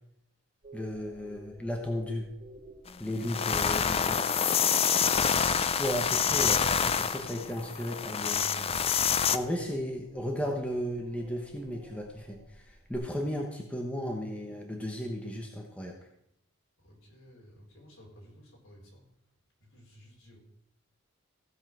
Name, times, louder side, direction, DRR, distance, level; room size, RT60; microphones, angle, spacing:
sound 1, 0.6-12.9, right 2 dB, 30° right, 2.2 m, -53 dB
voice 1, 0.7-2.3 3.0-4.2 5.8-8.8 9.3-15.9, equal, 5° left, 1 dB, 1.1 m, -35 dB
sound 2, 2.9-3.0 3.2-9.4, left 7 dB, 25° left, 0.4 m, -27 dB
voice 2, 16.8-19.1 19.7-20.4, left 1 dB, 65° left, -1 dB, 4.3 m, -53 dB
15.5 x 5.7 x 6.2 m, 0.75 s
head